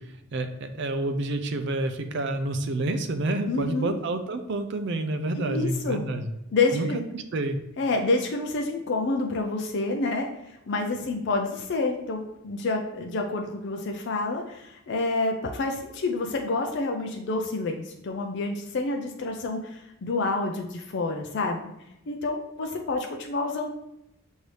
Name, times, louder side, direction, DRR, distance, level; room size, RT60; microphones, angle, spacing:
voice 1, 0.3-6.3 6.7-6.9 7.1-7.6, right 2 dB, 55° right, 8 dB, 0.4 m, -28 dB
voice 2, 3.5-4.0 5.4-6.1 6.5-7.0 7.8-21.6 22.1-23.7, left 3 dB, 55° left, 3 dB, 0.4 m, -28 dB
6.1 x 2.7 x 3.2 m, 0.87 s
head